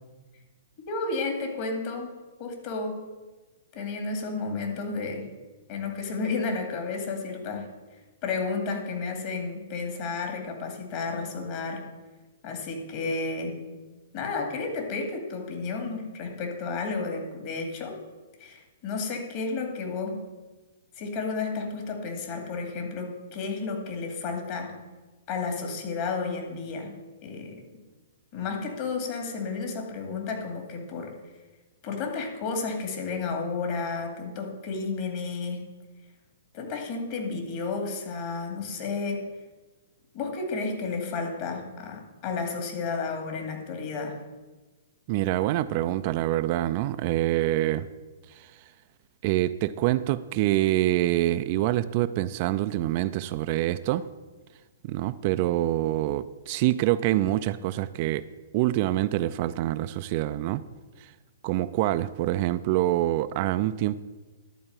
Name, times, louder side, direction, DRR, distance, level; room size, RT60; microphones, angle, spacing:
voice 1, 0.9-2.1 2.4-3.0 3.7-5.3 5.7-7.7 8.2-11.8 12.4-13.6 14.1-18.0 18.4-20.2 21.0-24.8 25.3-26.9 27.2-27.6 28.3-31.1 31.8-35.6 36.5-39.2 40.1-44.2, left 4 dB, 40° left, 3 dB, 2.2 m, -32 dB
voice 2, 45.1-47.9 48.3-48.5 49.2-54.1 54.8-58.3 58.5-60.6 61.0-61.1 61.4-64.0, right 15 dB, 40° right, 13 dB, 0.4 m, -26 dB
11.0 x 4.7 x 8.1 m, 1.2 s
figure-of-eight pair, 115°, 0 cm